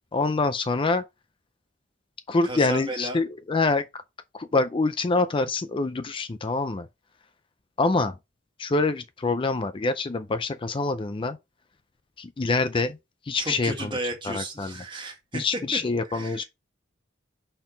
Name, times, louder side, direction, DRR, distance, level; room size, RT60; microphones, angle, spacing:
voice 1, 0.1-1.0 2.3-3.8 4.3-6.9 7.8-8.1 8.6-11.4 12.2-13.0 13.3-13.9 14.3-14.7 15.3-16.4, left 3 dB, 25° left, 0.4 m, -25 dB
voice 2, 2.4-3.2 13.4-15.4 15.7-15.8 16.1-16.4, right 2 dB, 25° right, 1.9 m, -34 dB
5.7 x 4.5 x 5.0 m
head